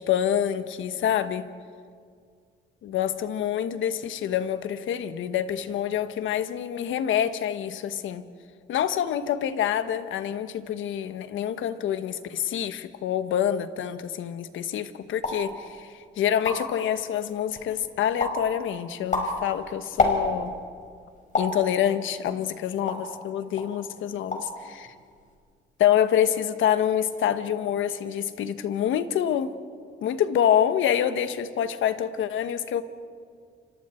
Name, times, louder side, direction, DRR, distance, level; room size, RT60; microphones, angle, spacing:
voice 1, 0.0-1.5 2.8-8.2 8.7-20.5 21.4-24.9 25.8-29.5 30.0-32.8, left 10 dB, 80° left, 11 dB, 1.3 m, -26 dB
sound 1, 15.2-15.5 16.0-16.1 16.3-16.8 17.3-17.8 18.2-18.5 18.9-20.6 21.3-21.6 22.2-23.2 23.6-23.8 24.1-24.6 24.8-25.3, left 3 dB, 40° left, 5.5 m, -28 dB
29.5 x 26.5 x 4.5 m, 2.1 s
cardioid pair, 90°, 20 cm